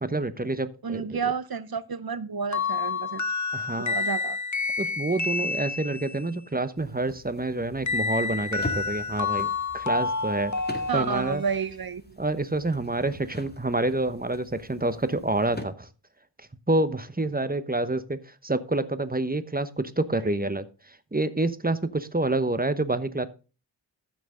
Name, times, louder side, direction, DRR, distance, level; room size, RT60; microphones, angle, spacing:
voice 1, 0.0-1.2 3.5-4.0 4.8-10.5 10.9-11.4 12.2-15.9 16.4-23.3, right 2 dB, 20° right, 1.0 m, -28 dB
voice 2, 0.8-3.2 3.9-4.4 10.9-12.2, right 6 dB, 50° right, 0.8 m, -30 dB
sound 1, 2.5-6.3 7.9-11.6, left 4 dB, 40° left, 1.3 m, -29 dB
sound 2, 6.7-15.6, left 1 dB, 20° left, 2.1 m, -43 dB
14.0 x 6.1 x 3.8 m
wide cardioid pair, 40°, 45 cm